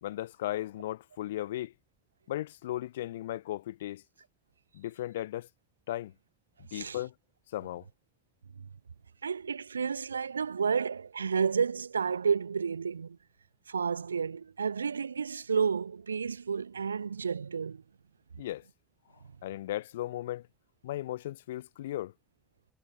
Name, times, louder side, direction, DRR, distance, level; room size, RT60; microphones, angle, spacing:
voice 1, 0.0-1.7 2.3-4.0 4.7-5.5 5.9-6.1 6.6-7.1 7.5-7.9 18.4-18.6 19.4-20.5 20.8-22.1, left 14 dB, 75° left, 1.1 m, -36 dB
voice 2, 9.2-13.2 13.7-17.8, right 6 dB, 85° right, 1.5 m, -31 dB
figure-of-eight pair, 45°, 0 cm